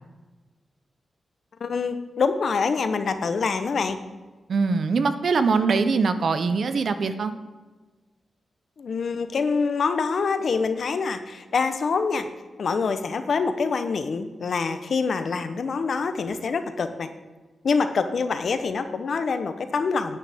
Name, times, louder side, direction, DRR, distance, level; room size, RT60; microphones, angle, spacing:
voice 1, 1.6-4.0 8.8-12.3 12.6-17.1 17.6-20.2, left 5 dB, 60° left, 9 dB, 0.7 m, -25 dB
voice 2, 4.5-7.3, right 4 dB, 60° right, 10 dB, 0.6 m, -22 dB
10.0 x 9.2 x 3.5 m, 1.3 s
wide cardioid pair, 125°, 0 cm